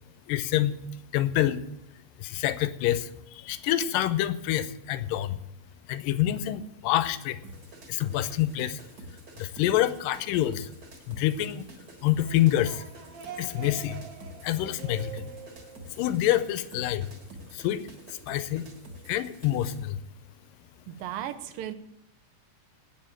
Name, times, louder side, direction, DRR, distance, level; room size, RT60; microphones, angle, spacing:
voice 1, 0.3-0.8 1.1-1.7 2.2-5.4 5.9-7.4 7.9-8.8 9.4-10.7 11.1-11.7 12.0-12.8 13.4-14.0 14.4-15.2 16.0-17.1 17.5-18.7 19.1-20.0, left 13 dB, 80° left, 13 dB, 2.3 m, -27 dB
sound 1, 7.4-19.8, right 1 dB, 40° right, 1.7 m, -48 dB
sound 2, 12.0-16.7, right 5 dB, 65° right, 2.1 m, -45 dB
voice 2, 20.9-21.7, right 11 dB, 85° right, 10 dB, 2.5 m, -35 dB
9.7 x 7.3 x 8.7 m, 0.85 s
omnidirectional pair, 3.9 m